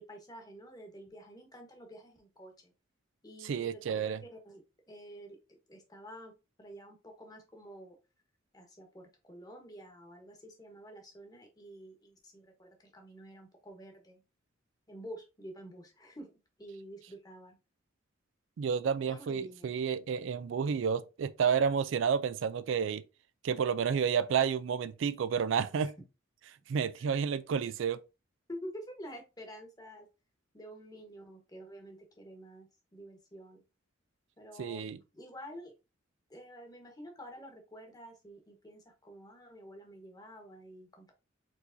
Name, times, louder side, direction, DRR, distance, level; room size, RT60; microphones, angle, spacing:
voice 1, 0.0-2.7 3.2-4.6 4.9-6.3 6.6-8.0 8.5-14.2 14.9-16.3 16.6-17.6 19.0-19.8 27.0-27.1 28.5-30.1 30.5-33.6 34.4-34.8 35.1-35.7 36.3-41.1, equal, 20° left, 1.2 m, -49 dB
voice 2, 3.4-4.2 18.6-23.0 23.4-25.9 26.7-28.0 34.6-35.0, right 7 dB, 70° right, 0.3 m, -30 dB
4.6 x 4.0 x 2.6 m
head